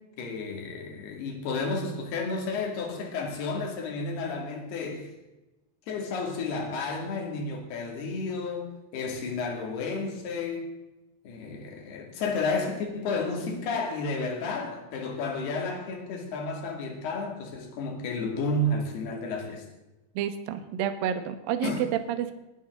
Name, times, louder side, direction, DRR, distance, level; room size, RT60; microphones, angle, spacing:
voice 1, 0.2-5.1 5.9-10.7 11.2-19.6 21.6-21.9, left 3 dB, 55° left, 2 dB, 4.2 m, -32 dB
voice 2, 20.2-22.3, right 10 dB, 85° right, 9 dB, 2.0 m, -29 dB
21.0 x 11.0 x 3.9 m, 1.0 s
omnidirectional pair, 5.9 m